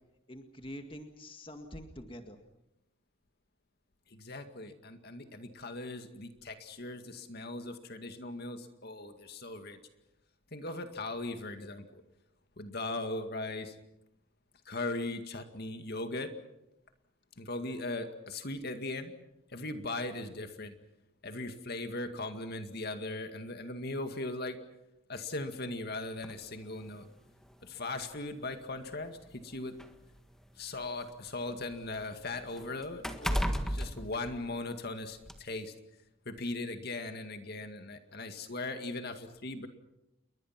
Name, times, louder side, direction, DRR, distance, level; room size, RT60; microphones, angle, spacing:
voice 1, 0.3-2.4, equal, 25° left, 5 dB, 2.0 m, -45 dB
voice 2, 4.1-9.8 10.5-12.0 12.6-13.8 14.7-16.3 17.4-19.1 19.5-20.7 21.2-24.6 25.1-27.1 27.6-29.7 30.6-35.7 36.3-39.7, left 2 dB, 50° left, 7 dB, 2.1 m, -39 dB
sound 1, 26.2-26.4 27.4-27.5 28.0-28.1 29.1-31.0 31.4-34.9 35.3-35.4, equal, 5° left, 1.6 m, -35 dB
29.0 x 22.5 x 6.0 m, 0.88 s
head